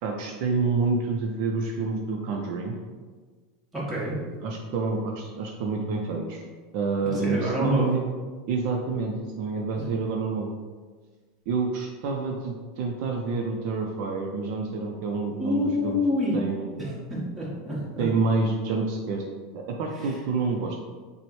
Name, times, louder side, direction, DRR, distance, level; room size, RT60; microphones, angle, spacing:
voice 1, 0.0-2.8 4.4-6.5 6.7-8.1 8.5-10.5 11.5-16.0 16.3-16.8 18.0-19.2 19.5-20.8, right 4 dB, 60° right, 1 dB, 0.4 m, -28 dB
voice 2, 3.7-4.2 7.0-7.9 9.8-9.9 15.4-16.3 16.8-18.0 20.0-20.1, left 1 dB, 10° right, -7 dB, 1.3 m, -27 dB
6.0 x 2.1 x 3.1 m, 1.4 s
supercardioid pair, 140°, 0 cm